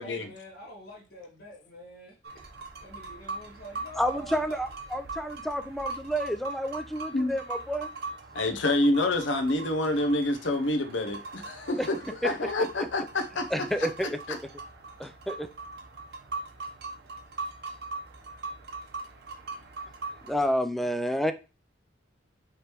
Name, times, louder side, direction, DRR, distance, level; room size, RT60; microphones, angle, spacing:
voice 1, 0.0-2.4 2.8-4.4, equal, 60° left, 1.7 m, -46 dB
sound 1, 2.2-20.5, right 3 dB, 55° right, 0.8 m, -41 dB
voice 2, 4.0-7.9 11.8-11.9 12.2-12.3 12.8-12.9 13.5-14.4 15.0-15.5 20.2-21.3, equal, ahead, 0.3 m, -29 dB
voice 3, 8.3-13.5 14.0-14.4, left 2 dB, 75° left, 0.8 m, -27 dB
5.0 x 3.1 x 3.0 m
head